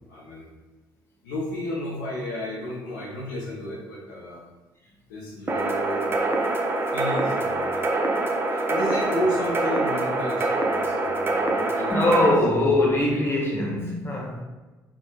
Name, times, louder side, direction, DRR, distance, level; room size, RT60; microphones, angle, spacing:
voice 1, 0.1-0.4 1.2-4.4 5.1-6.1 6.9-7.8 8.5-12.1, left 1 dB, 70° left, -4 dB, 0.6 m, -32 dB
sound 1, 5.5-12.3, right 2 dB, 20° right, 0.5 m, -25 dB
voice 2, 11.9-14.4, left 1 dB, 20° left, -2 dB, 1.1 m, -22 dB
3.5 x 2.7 x 2.9 m, 1.2 s
figure-of-eight pair, 45°, 10 cm